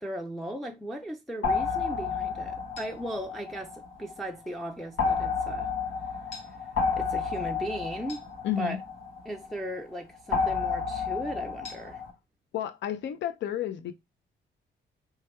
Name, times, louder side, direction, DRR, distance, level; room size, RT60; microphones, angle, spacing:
voice 1, 0.0-5.7 6.9-8.2 8.6-8.8 9.3-12.0, right 1 dB, ahead, 0.4 m, -37 dB
sound 1, 1.4-4.2 5.0-9.5 10.3-12.1, left 5 dB, 85° left, 1.2 m, -31 dB
voice 2, 8.4-8.8 12.5-13.9, left 11 dB, 65° left, 0.5 m, -31 dB
3.3 x 2.2 x 4.3 m
cardioid pair, 90°, 20 cm